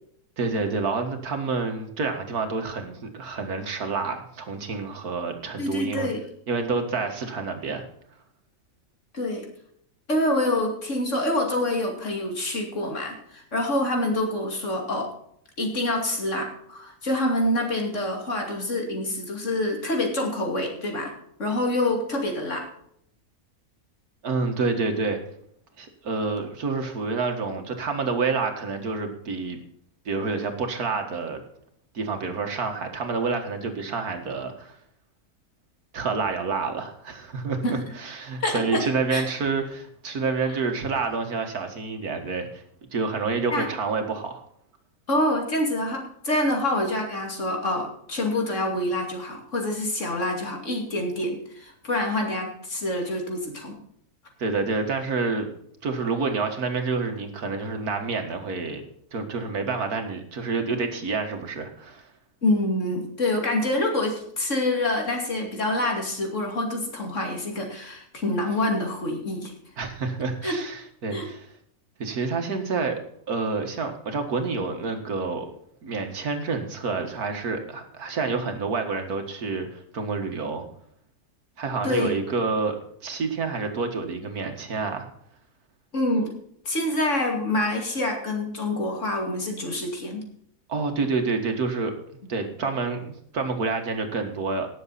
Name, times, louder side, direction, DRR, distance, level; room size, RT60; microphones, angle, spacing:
voice 1, 0.4-6.1 6.5-7.9 24.2-25.2 25.8-29.6 30.1-31.4 31.9-34.8 35.9-42.6 42.9-44.4 54.4-55.5 55.8-58.8 59.1-62.1 69.8-71.5 72.0-73.0 73.3-75.5 75.8-80.7 81.6-82.8 83.0-85.1 90.7-91.9 92.3-94.7, right 4 dB, 85° right, 5 dB, 2.2 m, -28 dB
voice 2, 5.6-6.3 9.1-9.5 10.1-15.1 15.6-22.7 37.6-37.8 38.4-38.8 39.1-39.2 43.5-43.7 45.1-53.8 62.4-69.5 70.4-70.6 71.1-71.3 81.8-82.1 85.9-86.3 86.6-90.2, left 1 dB, 55° left, 2 dB, 2.9 m, -26 dB
18.5 x 7.2 x 4.1 m, 0.68 s
omnidirectional pair, 1.6 m